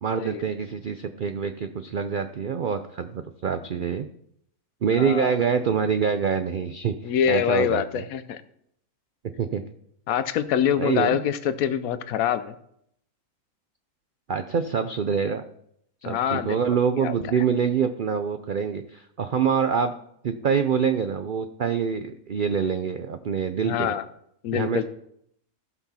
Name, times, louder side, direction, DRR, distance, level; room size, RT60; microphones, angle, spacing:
voice 1, 0.0-4.1 4.8-8.0 9.4-9.6 10.8-11.2 14.3-15.4 16.0-19.9 20.2-23.9 24.5-24.8, right 6 dB, 80° right, 8 dB, 0.4 m, -25 dB
voice 2, 5.0-5.3 7.0-8.4 10.1-12.5 16.0-17.4 23.6-24.1 24.4-24.8, left 9 dB, 70° left, 12 dB, 1.1 m, -25 dB
15.0 x 6.0 x 4.2 m, 0.71 s
omnidirectional pair, 1.6 m